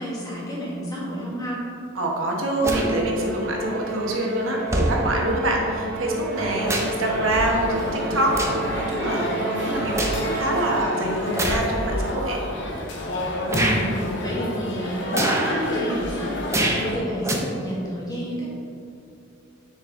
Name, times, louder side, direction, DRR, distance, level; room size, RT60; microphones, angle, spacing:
voice 1, 0.0-1.6 13.5-13.9 14.2-16.6 16.9-18.5, equal, 20° left, -6 dB, 1.5 m, -30 dB
voice 2, 1.9-12.4, right 1 dB, 85° right, -1 dB, 1.1 m, -26 dB
sound 1, 2.6-2.9 3.9-4.0 4.7-5.0 6.2-7.0 7.4-7.6 8.3-8.7 9.2-10.2 11.3-11.7 12.4-12.5 13.5-13.8 15.1-15.6 16.5-16.9 17.2-17.4, right 1 dB, 15° right, 0.6 m, -25 dB
Musical instrument, 2.6-11.1, right 2 dB, 55° right, 0.8 m, -30 dB
sound 2, 6.4-17.0, left 1 dB, 65° left, 0.9 m, -29 dB
6.7 x 4.6 x 3.6 m, 2.6 s
head